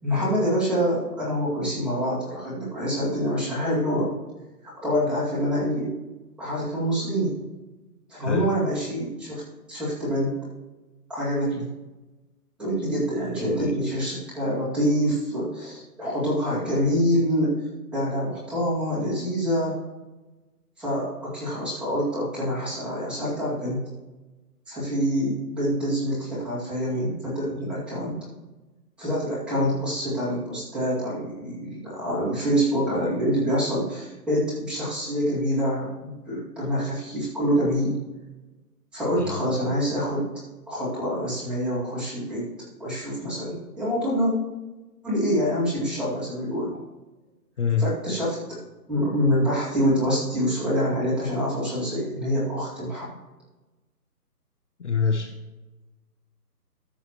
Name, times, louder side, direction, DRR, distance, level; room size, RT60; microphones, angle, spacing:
voice 1, 0.0-4.1 4.8-5.9 6.4-7.4 8.1-9.4 9.7-10.4 11.1-11.7 12.6-17.5 17.9-19.8 20.8-23.9 24.7-28.2 29.0-38.0 38.9-40.3 40.7-42.5 42.8-44.3 45.0-46.8 47.8-48.4 48.9-53.1, equal, ahead, -11 dB, 2.1 m, -26 dB
voice 2, 13.4-13.7 39.2-39.4 47.6-47.9 54.8-55.4, left 5 dB, 50° left, 6 dB, 0.8 m, -25 dB
14.0 x 6.4 x 2.9 m, 1.1 s
hypercardioid pair, 160°, 48 cm